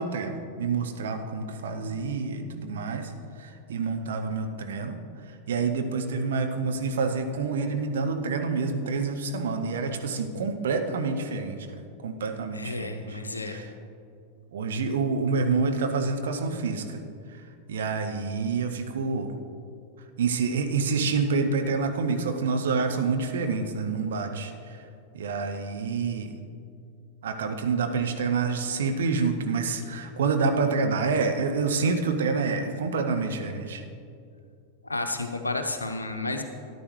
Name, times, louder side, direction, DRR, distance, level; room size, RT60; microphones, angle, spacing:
voice 1, 0.0-3.1 3.4-5.0 5.5-11.6 12.0-13.7 14.5-17.0 17.3-17.4 17.7-19.4 20.2-24.5 25.1-26.3 27.2-33.8, right 4 dB, 60° right, 5 dB, 0.9 m, -27 dB
voice 2, 12.5-13.6 34.8-36.4, left 2 dB, 80° left, 6 dB, 0.8 m, -31 dB
13.5 x 10.5 x 3.2 m, 2.5 s
figure-of-eight pair, 90°, 0 cm